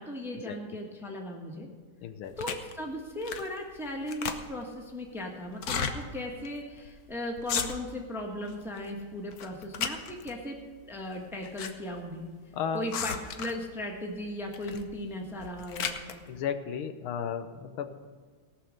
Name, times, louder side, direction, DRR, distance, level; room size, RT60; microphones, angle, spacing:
voice 1, 0.0-1.7 2.4-10.6 10.9-12.3 12.7-16.2, left 1 dB, ahead, 1 dB, 1.1 m, -37 dB
voice 2, 2.0-2.3 12.5-12.9 16.3-18.1, left 7 dB, 80° left, 8 dB, 1.6 m, -34 dB
sound 1, 2.4-2.7 3.2-3.6 3.9-4.7 5.5-6.0 6.4-6.5 6.8-7.0 7.4-8.0 8.5-8.9 9.3-10.3 11.1-11.7 12.0-12.1 12.9-13.7 14.5-14.9 15.3-16.1, left 7 dB, 60° left, 1.1 m, -34 dB
17.5 x 6.2 x 6.5 m, 1.5 s
omnidirectional pair, 2.3 m